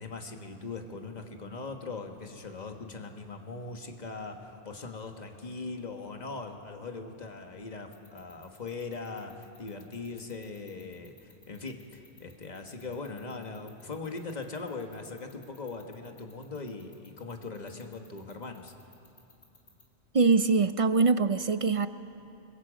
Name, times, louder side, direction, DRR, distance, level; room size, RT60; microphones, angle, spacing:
voice 1, 0.0-18.7, left 3 dB, 40° left, 4 dB, 1.5 m, -40 dB
sound 1, 7.9-19.8, left 3 dB, 65° left, 2.6 m, -57 dB
voice 2, 20.1-21.9, right 4 dB, 45° right, 12 dB, 0.4 m, -23 dB
28.0 x 22.0 x 5.1 m, 2.8 s
omnidirectional pair, 1.1 m